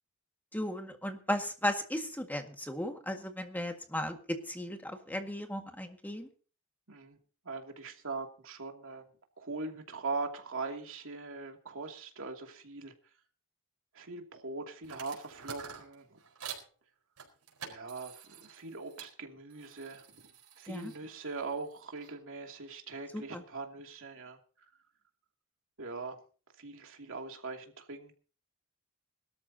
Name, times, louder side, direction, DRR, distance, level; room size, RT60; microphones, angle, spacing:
voice 1, 0.5-6.3 20.7-20.9 23.1-23.4, left 1 dB, 10° left, 5 dB, 1.8 m, -36 dB
voice 2, 6.9-7.2 7.4-9.1 9.4-12.9 13.9-16.2 17.6-20.2 20.6-24.7 25.8-26.2 26.6-28.2, right 3 dB, 60° right, 3 dB, 2.7 m, -41 dB
sound 1, 14.8-16.7 17.2-19.1 19.5-22.1, right 7 dB, 80° right, 4.6 m, -48 dB
22.5 x 13.0 x 2.8 m, 0.38 s
head